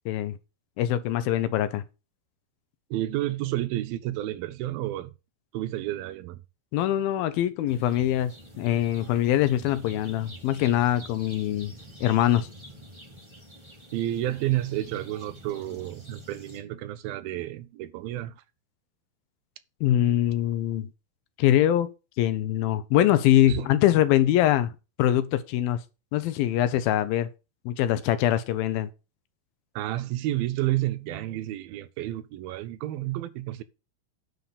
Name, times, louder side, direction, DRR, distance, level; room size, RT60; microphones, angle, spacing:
voice 1, 0.1-0.4 0.8-1.8 6.7-11.7 12.0-12.5 19.8-20.9 21.4-21.9 22.2-24.7 25.0-25.8 26.1-27.3 27.7-28.9, left 12 dB, 80° left, 2.5 m, -23 dB
voice 2, 2.9-5.1 5.5-6.4 13.9-18.4 23.5-23.7 29.8-33.6, right 14 dB, 80° right, 2.4 m, -30 dB
sound 1, 7.7-16.6, equal, 10° right, 1.8 m, -47 dB
9.6 x 4.4 x 7.0 m
omnidirectional pair, 4.4 m